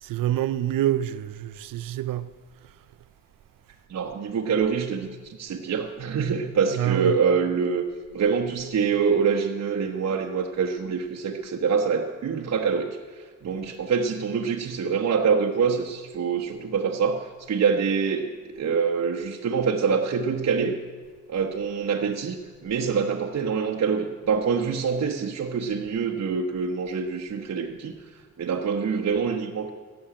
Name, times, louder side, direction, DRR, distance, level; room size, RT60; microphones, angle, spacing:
voice 1, 0.0-2.3 6.7-7.2, right 12 dB, 85° right, 0.6 m, -26 dB
voice 2, 3.9-7.8 8.1-12.9 13.1-20.8 21.3-27.9 28.4-29.7, right 6 dB, 55° right, 1.1 m, -25 dB
15.0 x 7.1 x 8.8 m
cardioid pair, 80°, 32 cm